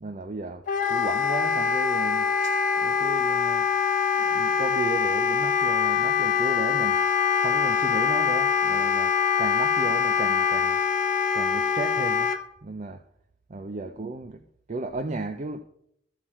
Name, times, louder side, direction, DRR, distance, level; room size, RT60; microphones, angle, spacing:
voice 1, 0.0-3.7 4.1-7.0 7.4-10.8 11.3-12.3 12.6-13.0 13.5-14.4 14.7-15.6, right 3 dB, 40° right, 0.5 m, -34 dB
Wind instrument woodwind instrument, 0.7-12.4, left 6 dB, 45° left, 0.7 m, -24 dB
15.0 x 6.2 x 4.3 m
head